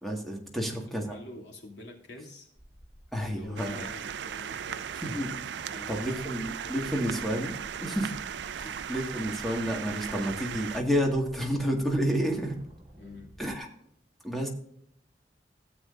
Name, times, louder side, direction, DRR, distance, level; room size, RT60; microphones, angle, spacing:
voice 1, 0.0-1.2 3.1-3.9 5.0-5.4 5.9-8.2 8.6-12.6 13.4-13.7 14.2-14.5, equal, ahead, 0 dB, 1.8 m, -30 dB
voice 2, 0.5-2.5 3.2-5.0 5.7-7.5 7.8-8.1 8.6-8.8 13.0-13.4, left 1 dB, 85° left, 0 dB, 2.6 m, -47 dB
sound 1, 2.6-13.6, equal, 20° right, 1.6 m, -52 dB
sound 2, 3.6-10.8, right 8 dB, 80° right, 0.4 m, -37 dB
15.5 x 7.7 x 2.6 m, 0.70 s
head